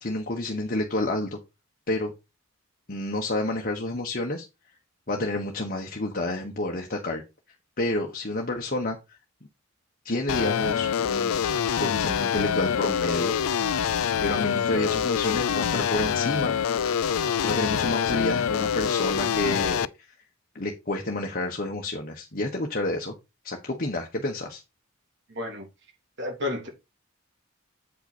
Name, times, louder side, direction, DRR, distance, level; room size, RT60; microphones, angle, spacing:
voice 1, 0.0-1.4 1.9-2.1 2.9-4.4 5.1-7.2 7.8-9.0 10.0-11.4 11.8-13.3 14.2-17.0 17.4-19.9 20.5-23.1 23.4-24.6, left 2 dB, 40° left, 1.2 m, -29 dB
sound 1, 10.3-19.9, left 7 dB, 80° left, 0.4 m, -25 dB
voice 2, 25.3-25.7 26.2-26.7, left 2 dB, 55° right, 3.3 m, -31 dB
8.3 x 5.6 x 4.3 m
head